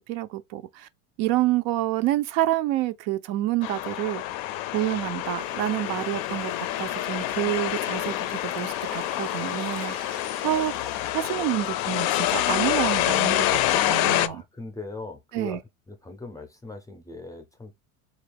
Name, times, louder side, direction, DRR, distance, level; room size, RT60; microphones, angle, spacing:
voice 1, 0.1-0.9 1.2-4.2 4.7-6.5 6.8-10.1 10.4-10.7 11.1-14.4 15.3-15.6, right 14 dB, 60° right, 0.5 m, -28 dB
sound 1, 3.6-14.3, left 14 dB, 60° left, 0.5 m, -27 dB
sound 2, 5.4-11.1, right 9 dB, 80° right, 0.9 m, -47 dB
voice 2, 14.0-15.6 15.9-17.8, left 3 dB, 10° left, 0.5 m, -40 dB
4.1 x 2.4 x 3.3 m
supercardioid pair, 135°, 42 cm